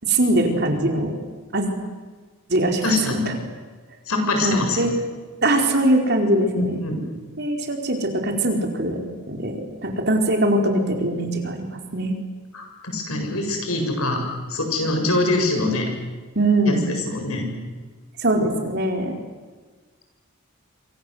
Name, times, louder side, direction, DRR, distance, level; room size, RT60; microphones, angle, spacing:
voice 1, 0.0-1.1 1.5-1.7 2.5-3.0 4.4-4.9 5.4-6.8 7.4-9.0 9.3-11.7 11.9-12.2 16.3-16.8 18.2-19.1, right 1 dB, 50° right, 3 dB, 4.6 m, -21 dB
voice 2, 2.8-3.4 4.1-4.8 6.5-7.0 12.5-14.2 14.5-15.9 16.7-16.8 17.1-17.5, left 2 dB, 85° left, 3 dB, 7.3 m, -24 dB
27.0 x 26.0 x 8.2 m, 1.4 s
head